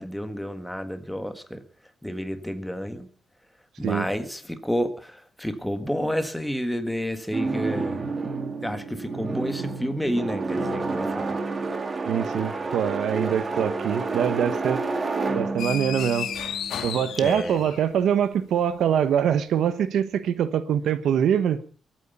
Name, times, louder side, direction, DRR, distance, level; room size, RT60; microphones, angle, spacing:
voice 1, 0.0-1.6 2.0-3.1 3.8-8.0 8.6-11.4 17.2-17.6, equal, 5° left, 8 dB, 1.6 m, -30 dB
sound 1, 7.3-17.3, right 3 dB, 30° right, 1.9 m, -30 dB
voice 2, 12.1-14.8 15.3-16.3 16.8-21.6, right 8 dB, 80° right, 12 dB, 1.2 m, -24 dB
sound 2, 15.6-18.1, left 8 dB, 75° left, 1.9 m, -33 dB
23.0 x 9.2 x 5.7 m, 0.41 s
cardioid pair, 135°, 0 cm